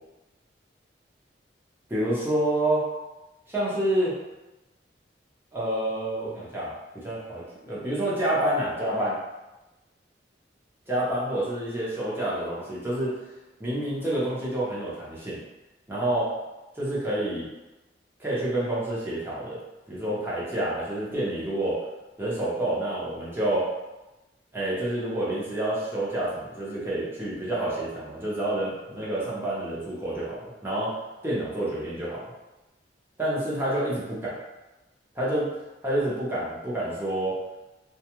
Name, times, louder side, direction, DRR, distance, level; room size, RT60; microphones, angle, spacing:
voice 1, 1.9-2.8 3.5-4.1 5.5-9.1 10.9-13.1 13.6-15.4 15.9-16.3 16.8-17.5 18.2-19.6 19.9-21.8 22.2-23.7 24.5-30.9 31.2-32.3 33.2-34.3 35.1-35.5 35.8-37.4, right 1 dB, 15° right, -8 dB, 0.8 m, -28 dB
2.3 x 2.1 x 2.9 m, 1.0 s
head